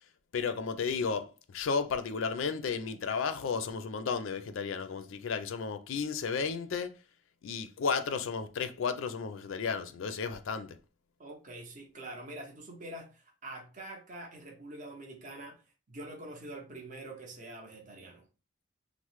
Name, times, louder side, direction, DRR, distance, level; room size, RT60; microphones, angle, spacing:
voice 1, 0.3-6.9 7.4-10.8, left 5 dB, 75° left, 0.4 m, -33 dB
voice 2, 11.2-15.6 15.9-18.3, right 1 dB, 40° right, 0.6 m, -45 dB
3.1 x 2.0 x 3.0 m
head